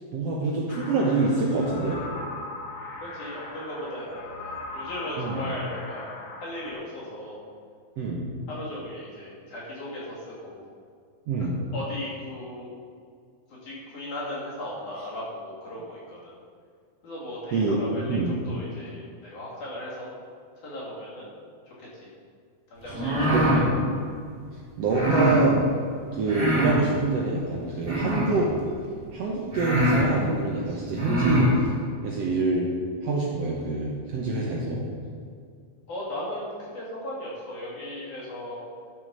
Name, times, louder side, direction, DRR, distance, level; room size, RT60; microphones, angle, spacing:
voice 1, 0.1-2.0 5.2-5.5 8.0-8.2 11.3-11.6 17.5-17.8 18.1-18.4 22.8-22.9 23.3-23.5 24.8-25.6 26.1-28.5 29.1-31.5 32.0-32.7 33.0-34.8, right 3 dB, 80° right, -3 dB, 1.4 m, -26 dB
sound 1, 0.7-6.7, left 2 dB, 80° left, 1.0 m, -39 dB
voice 2, 3.0-6.1 6.4-7.4 8.5-10.6 11.4-12.7 13.5-16.4 17.0-20.1 20.6-21.3 21.7-22.1 22.7-23.6 35.9-36.5 36.7-38.6, left 1 dB, 55° left, -7 dB, 4.1 m, -37 dB
sound 2, 22.9-23.6 24.9-25.4 26.2-26.8 27.8-28.4 29.1-29.2 29.5-30.1 30.9-31.5, equal, 10° right, 2.2 m, -24 dB
12.5 x 6.1 x 5.4 m, 2.2 s
omnidirectional pair, 4.4 m